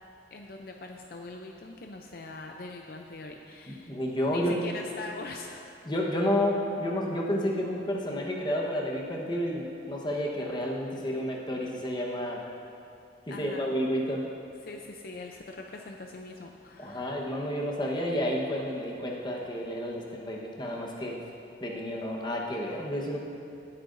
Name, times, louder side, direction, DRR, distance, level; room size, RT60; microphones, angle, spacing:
voice 1, 0.3-4.0 4.3-5.8 13.3-13.9 14.6-17.2, left 2 dB, 55° left, 2 dB, 0.5 m, -42 dB
voice 2, 3.7-4.6 5.8-12.4 13.3-14.2 16.8-21.2 21.6-23.2, equal, 25° left, -2 dB, 1.1 m, -30 dB
18.0 x 8.6 x 2.6 m, 2.7 s
head